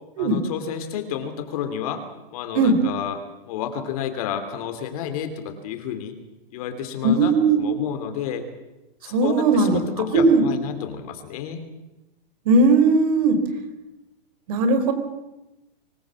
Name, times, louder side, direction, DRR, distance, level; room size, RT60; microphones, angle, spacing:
voice 1, 0.2-2.0 2.3-6.2 6.5-8.4 9.0-11.6, left 8 dB, 40° left, 8 dB, 2.9 m, -30 dB
voice 2, 7.0-7.6 9.1-9.8 10.1-10.4 12.5-13.4 14.5-14.9, right 3 dB, 40° right, 8 dB, 4.2 m, -18 dB
25.0 x 20.0 x 7.5 m, 1.0 s
hypercardioid pair, 170°, 29 cm